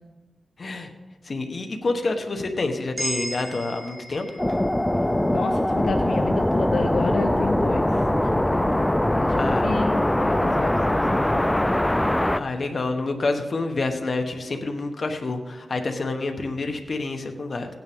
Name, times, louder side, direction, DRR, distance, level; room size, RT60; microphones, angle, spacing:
voice 1, 0.6-0.9 1.2-4.3 9.4-9.7 12.3-17.7, left 3 dB, 50° left, 5 dB, 1.1 m, -28 dB
sound 1, 3.0-7.2, right 1 dB, 15° right, 2.7 m, -37 dB
sound 2, 4.4-12.4, left 1 dB, 10° left, 0.4 m, -22 dB
voice 2, 5.3-11.5, left 4 dB, 75° left, 4 dB, 0.6 m, -31 dB
16.0 x 9.5 x 3.6 m, 1.2 s
wide cardioid pair, 95°, 0 cm